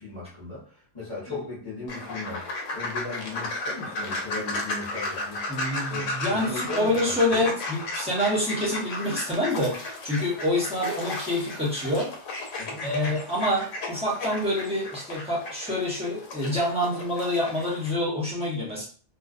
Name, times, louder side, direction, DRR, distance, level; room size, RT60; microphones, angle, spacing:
voice 1, 0.0-2.5 2.7-5.4 5.9-7.5 12.6-12.8, left 3 dB, 30° left, -8 dB, 0.8 m, -37 dB
sound 1, 1.9-17.9, left 2 dB, 80° left, 1.0 m, -34 dB
voice 2, 5.5-12.1 12.8-18.9, left 1 dB, 5° right, -6 dB, 0.6 m, -27 dB
2.5 x 2.2 x 2.4 m, 0.42 s
omnidirectional pair, 1.3 m